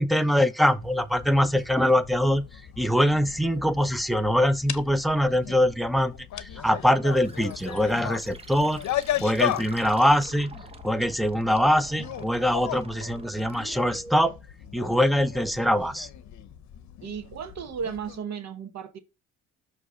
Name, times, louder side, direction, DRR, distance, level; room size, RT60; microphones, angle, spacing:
voice 1, 0.0-2.5 2.8-8.8 9.2-10.6 10.8-14.4 14.7-16.1, equal, ahead, 0.6 m, -23 dB
sound 1, 0.8-18.2, left 11 dB, 70° left, 0.7 m, -37 dB
sound 2, 7.1-14.0, right 3 dB, 20° right, 0.9 m, -46 dB
voice 2, 17.0-19.0, right 7 dB, 60° right, 1.2 m, -34 dB
6.1 x 3.2 x 5.5 m
cardioid pair, 90°, 30 cm